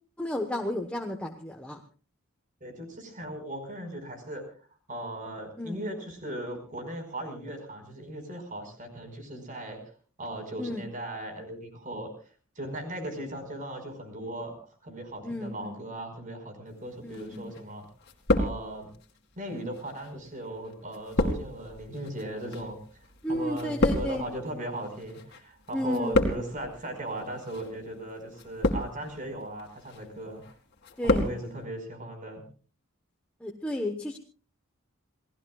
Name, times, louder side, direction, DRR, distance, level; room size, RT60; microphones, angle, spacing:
voice 1, 0.2-1.8 5.6-5.8 10.6-10.8 15.2-15.8 17.0-17.5 23.2-24.3 25.7-26.2 31.0-31.3 33.4-34.2, left 1 dB, 5° left, 2 dB, 1.2 m, -32 dB
voice 2, 2.6-4.4 4.9-9.8 10.2-12.1 12.6-14.5 14.8-17.9 18.4-18.9 19.4-22.8 23.3-30.4 31.0-32.5, right 1 dB, 40° right, 6 dB, 5.3 m, -38 dB
sound 1, 17.1-17.7 18.0-19.0 19.8-25.4 25.7-26.7 27.4-27.7 28.3-29.1 29.6-30.0 30.4-31.4 31.6-31.7, left 1 dB, 55° left, 2.4 m, -29 dB
28.5 x 18.0 x 2.4 m, 0.38 s
head